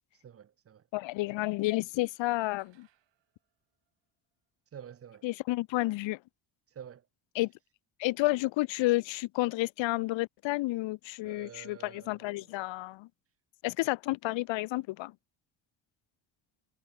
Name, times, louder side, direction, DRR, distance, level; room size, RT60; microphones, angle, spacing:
voice 1, 0.2-0.8 4.7-5.3 6.7-7.1 11.2-12.5, right 8 dB, 30° right, 0.7 m, -49 dB
voice 2, 0.9-2.9 5.2-6.2 7.3-7.5 8.0-13.1 13.6-15.1, left 19 dB, 80° left, 0.7 m, -31 dB
sound 1, 1.8-4.5, right 13 dB, 75° right, 7.1 m, -73 dB
cardioid pair, 140°, 44 cm